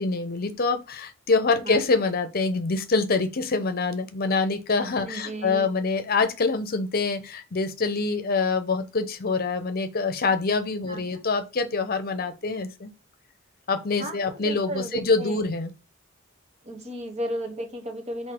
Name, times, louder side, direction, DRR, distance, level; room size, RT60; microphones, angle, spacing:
voice 1, 0.0-12.9 13.7-15.7, left 4 dB, 50° left, 0.7 m, -25 dB
voice 2, 5.1-5.7 10.9-11.2 14.0-15.4 16.6-18.3, right 1 dB, 35° right, 0.9 m, -34 dB
3.9 x 2.7 x 4.4 m
head